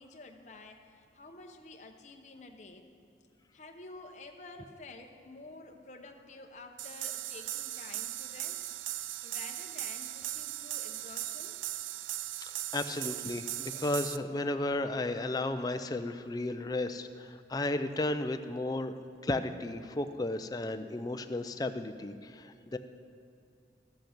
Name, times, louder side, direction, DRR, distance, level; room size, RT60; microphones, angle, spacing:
voice 1, 0.0-2.9 3.5-8.7 9.2-11.6, left 3 dB, 40° left, 3 dB, 0.8 m, -50 dB
sound 1, 6.8-14.2, right 15 dB, 85° right, 0.3 m, -38 dB
voice 2, 12.7-18.9 19.2-22.8, left 2 dB, 20° left, 8 dB, 0.4 m, -34 dB
13.0 x 7.9 x 5.9 m, 2.5 s
head